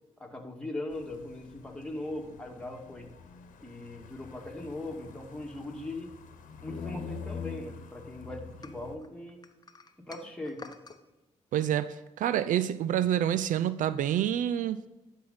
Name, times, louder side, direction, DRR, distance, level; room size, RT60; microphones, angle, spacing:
voice 1, 0.2-3.1 3.6-6.1 6.6-9.4 10.0-10.6, left 2 dB, 5° left, 1 dB, 2.0 m, -39 dB
sound 1, 0.9-9.0, left 5 dB, 70° left, 1.1 m, -45 dB
sound 2, 8.6-11.0, left 4 dB, 30° left, 0.9 m, -49 dB
voice 2, 11.5-14.8, right 11 dB, 70° right, 14 dB, 0.4 m, -28 dB
11.5 x 5.5 x 4.1 m, 1.1 s
supercardioid pair, 55°, 14 cm